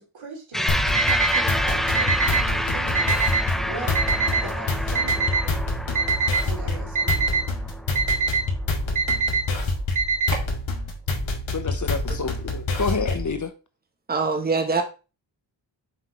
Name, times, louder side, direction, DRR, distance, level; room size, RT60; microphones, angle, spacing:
voice 1, 0.0-3.1 3.6-4.0 4.3-5.6 6.4-7.4, right 4 dB, 85° right, 3.2 m, -39 dB
sound 1, 0.5-9.2, equal, ahead, 0.5 m, -28 dB
sound 2, 0.7-13.4, left 2 dB, 85° left, 2.1 m, -27 dB
Alarm, 0.9-1.4 1.9-2.4 2.9-3.4 4.0-4.4 5.0-5.4 6.0-6.4 7.0-7.4 8.0-8.4 9.0-9.4 10.0-10.5, right 5 dB, 40° right, 2.0 m, -23 dB
voice 2, 11.5-13.5, left 5 dB, 40° left, 1.0 m, -28 dB
voice 3, 14.1-14.8, right 4 dB, 20° right, 1.1 m, -23 dB
7.2 x 5.9 x 3.2 m
wide cardioid pair, 95°, 46 cm